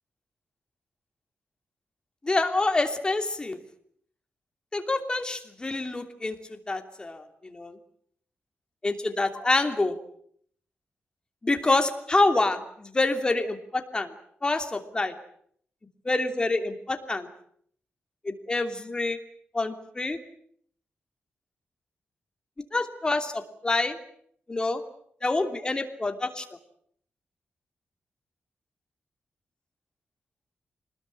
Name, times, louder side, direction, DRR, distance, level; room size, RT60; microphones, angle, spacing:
voice 1, 2.2-3.6 4.7-7.8 8.8-10.0 11.4-14.1 14.4-15.1 16.0-17.3 18.2-19.2 19.5-20.2 22.7-24.0 24.5-24.8 25.2-26.4, left 2 dB, 20° left, 6 dB, 3.0 m, -27 dB
26.0 x 20.5 x 8.9 m, 0.65 s
wide cardioid pair, 140°, 4 cm